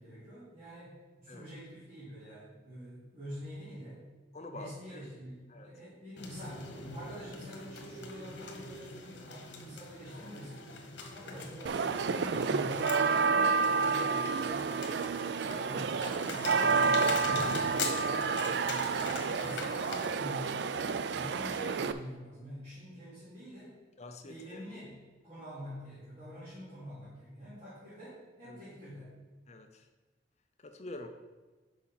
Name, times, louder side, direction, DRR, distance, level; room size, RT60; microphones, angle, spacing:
voice 1, 0.0-4.0 4.5-10.6 11.1-12.9 13.2-14.8 15.3-17.9 18.2-18.5 18.9-20.7 21.1-23.7 24.2-29.1, equal, 35° right, -11 dB, 2.6 m, -46 dB
voice 2, 4.3-5.0 5.5-5.7 21.1-21.3 24.0-24.6 28.5-28.6 29.5-29.9 30.6-31.1, left 2 dB, 35° left, 6 dB, 0.6 m, -46 dB
sound 1, 6.2-20.2, left 3 dB, 80° left, 1.2 m, -42 dB
sound 2, 11.7-21.9, right 5 dB, 70° right, 0.4 m, -30 dB
6.7 x 5.3 x 5.7 m, 1.3 s
head